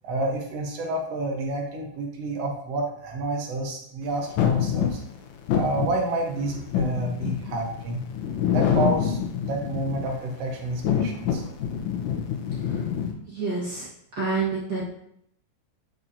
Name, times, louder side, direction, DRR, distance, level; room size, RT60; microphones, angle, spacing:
voice 1, 0.0-5.0 5.5-8.0 8.5-9.2 9.4-11.4, right 2 dB, 60° right, 1 dB, 1.8 m, -29 dB
sound 1, 4.4-10.2 10.7-13.1, left 8 dB, 70° left, 2.0 m, -26 dB
voice 2, 13.3-13.9 14.2-14.9, right 4 dB, 45° right, -6 dB, 1.4 m, -28 dB
9.2 x 5.8 x 2.7 m, 0.72 s
omnidirectional pair, 4.1 m